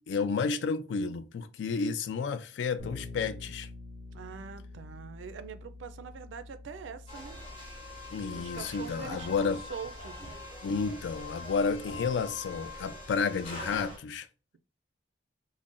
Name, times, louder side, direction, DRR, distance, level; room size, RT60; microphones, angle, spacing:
voice 1, 0.0-3.7 8.1-9.6 10.6-14.3, left 5 dB, 70° left, 0.3 m, -31 dB
Bass guitar, 2.8-12.6, left 2 dB, 55° left, 1.0 m, -48 dB
voice 2, 4.1-7.4 8.3-10.3, right 6 dB, 85° right, 0.3 m, -44 dB
sound 1, 7.1-14.0, left 2 dB, 30° left, 0.8 m, -43 dB
2.4 x 2.1 x 3.6 m
head